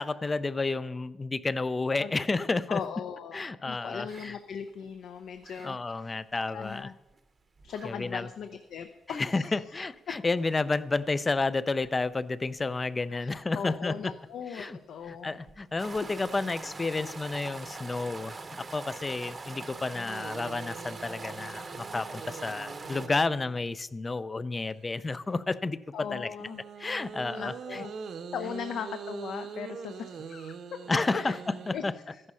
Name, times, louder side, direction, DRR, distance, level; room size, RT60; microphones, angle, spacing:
voice 1, 0.0-2.8 3.3-4.4 5.6-6.9 7.8-8.3 9.1-14.1 14.5-14.8 15.0-26.3 26.8-27.8 30.9-31.9, left 3 dB, 20° left, 17 dB, 0.4 m, -31 dB
voice 2, 2.7-6.1 6.5-6.9 7.6-9.6 13.1-15.4 19.9-20.1 25.9-26.6 27.3-27.9 28.3-30.8 31.1-31.4 31.7-32.2, left 7 dB, 65° left, 8 dB, 0.7 m, -39 dB
sound 1, 4.1-4.3 4.7-4.8 5.2-5.7 6.6-6.9 7.1-7.2 7.6-7.9 8.2-8.3 8.9-9.0 11.8-12.1 12.5-12.6 15.5-23.1, right 3 dB, 20° right, 0.8 m, -43 dB
sound 2, 20.1-23.7 26.4-31.8, right 6 dB, 50° right, 0.9 m, -43 dB
14.0 x 11.0 x 5.6 m, 1.1 s
cardioid pair, 170°, 0 cm